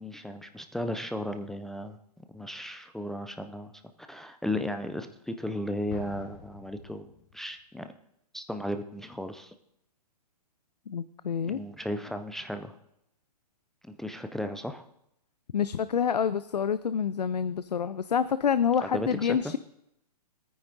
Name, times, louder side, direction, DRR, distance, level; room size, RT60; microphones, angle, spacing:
voice 1, 0.0-2.0 2.3-3.7 4.1-7.9 8.3-9.5 11.5-12.8 13.8-14.9 18.8-19.5, left 1 dB, ahead, 6 dB, 0.3 m, -35 dB
Explosion, 5.9-7.7, left 3 dB, 35° left, 2.3 m, -47 dB
voice 2, 10.9-11.6 15.5-19.6, left 7 dB, 85° left, 15 dB, 0.5 m, -27 dB
18.5 x 9.4 x 2.7 m, 0.78 s
hypercardioid pair, 130°, 20 cm